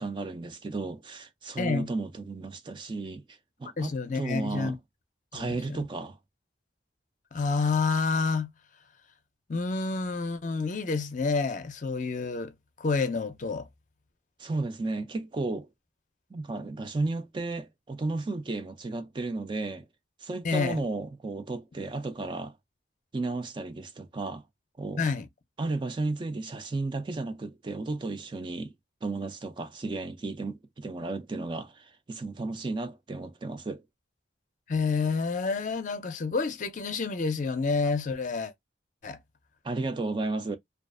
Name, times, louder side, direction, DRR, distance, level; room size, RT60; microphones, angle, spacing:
voice 1, 0.0-4.8 5.3-6.2 14.4-15.7 16.3-19.9 20.2-22.5 23.1-24.4 24.8-25.1 25.6-28.7 29.0-33.8 39.6-40.6, right 3 dB, 25° right, 0.3 m, -33 dB
voice 2, 3.8-4.8 5.3-5.8 7.3-8.5 9.5-12.5 12.8-13.7 20.4-20.8 25.0-25.3 34.7-38.5 39.0-39.2, left 4 dB, 40° left, 0.5 m, -29 dB
2.4 x 2.3 x 2.3 m
head